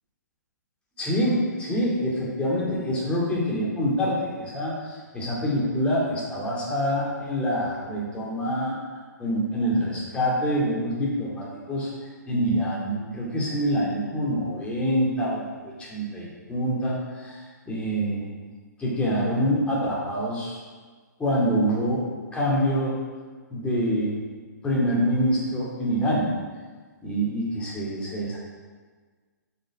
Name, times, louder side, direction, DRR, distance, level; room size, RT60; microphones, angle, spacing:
voice 1, 1.0-8.8 9.2-11.9 12.3-18.2 18.8-20.6 21.2-22.1 22.3-23.0 23.5-24.2 24.6-26.3 27.0-28.4, equal, 10° left, -5 dB, 2.4 m, -26 dB
8.6 x 5.8 x 4.8 m, 1.5 s
figure-of-eight pair, 125°, 10 cm